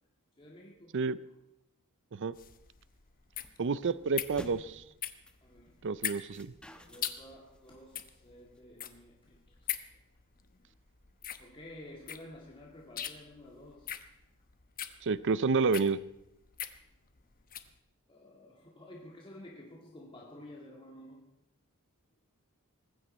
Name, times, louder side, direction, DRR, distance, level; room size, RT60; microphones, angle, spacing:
voice 1, 0.4-1.0 5.4-5.8 6.9-9.9 11.4-14.0 18.1-21.3, left 1 dB, 25° left, -2 dB, 1.9 m, -51 dB
sound 1, 2.3-17.7, left 10 dB, 40° left, 1.0 m, -42 dB
sound 2, 3.3-8.6, equal, 5° left, 1.1 m, -52 dB
voice 2, 3.6-4.8 5.8-6.5 15.0-16.0, right 4 dB, 55° right, 17 dB, 0.5 m, -29 dB
19.5 x 15.5 x 4.3 m, 0.84 s
head